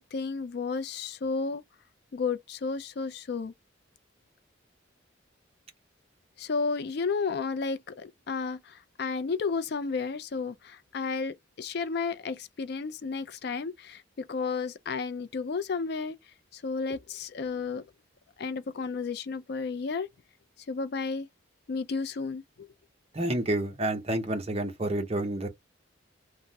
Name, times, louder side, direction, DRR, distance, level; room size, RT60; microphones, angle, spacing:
voice 1, 0.0-1.6 2.1-3.5 6.4-16.2 16.5-17.8 18.4-20.1 20.7-21.3 21.7-22.7, left 4 dB, 55° left, 0.4 m, -32 dB
voice 2, 23.1-25.5, right 1 dB, 30° right, 0.8 m, -29 dB
3.4 x 2.1 x 2.7 m
head